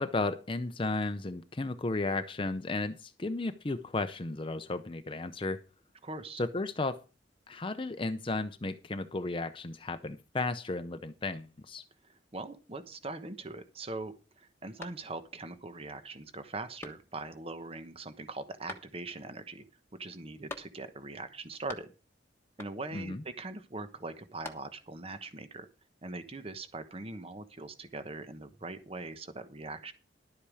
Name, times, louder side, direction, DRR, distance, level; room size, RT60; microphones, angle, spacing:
voice 1, 0.0-5.6 6.4-7.0 7.5-11.8 22.9-23.2, left 2 dB, 30° left, 0.6 m, -34 dB
voice 2, 6.0-6.4 12.0-19.6 20.0-21.9 22.6-25.7 26.0-29.9, right 3 dB, 35° right, 1.1 m, -41 dB
sound 1, 14.8-15.5 15.9-16.0 16.8-17.4 18.7-19.3 20.5-21.1 21.3-22.2 22.6-23.1 24.1-25.0, left 2 dB, 15° left, 1.3 m, -47 dB
12.0 x 8.5 x 4.9 m
head